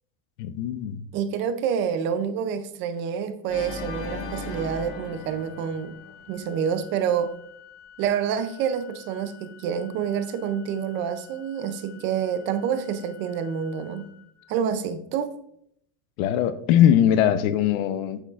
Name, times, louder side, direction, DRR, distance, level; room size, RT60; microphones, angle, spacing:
voice 1, 0.4-1.0 16.2-18.2, left 10 dB, 60° left, 0.8 m, -21 dB
voice 2, 1.1-6.0 6.3-7.3 8.0-14.1 14.5-15.3, right 7 dB, 30° right, 0.3 m, -27 dB
Organ, 3.5-6.6, left 3 dB, 40° left, 1.2 m, -37 dB
Organ 2, 3.8-14.8, left 9 dB, 80° left, 1.5 m, -50 dB
8.8 x 6.9 x 2.4 m
supercardioid pair, 150°, 46 cm